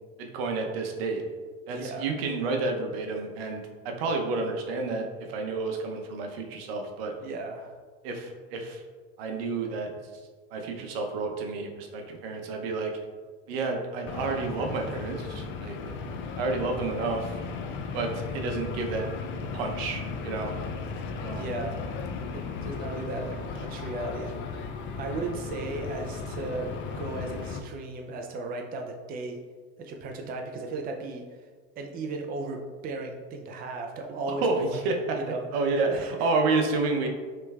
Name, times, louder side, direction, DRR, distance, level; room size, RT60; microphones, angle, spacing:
voice 1, 0.2-1.2 1.7-7.1 8.0-8.8 9.2-9.9 10.5-12.9 13.5-15.8 16.4-17.4 17.9-19.1 19.5-20.5 21.2-21.4 34.3-35.2 35.5-37.1, right 3 dB, 75° right, 3 dB, 0.8 m, -30 dB
voice 2, 1.7-2.1 7.2-7.7 15.8-16.2 18.0-18.1 21.3-21.9 22.3-24.4 25.0-29.4 29.8-31.5 31.8-36.3, right 3 dB, 30° right, 3 dB, 0.5 m, -36 dB
sound 1, 14.1-27.6, left 5 dB, 40° left, 0.4 m, -36 dB
5.2 x 3.3 x 2.3 m, 1.5 s
supercardioid pair, 105°, 30 cm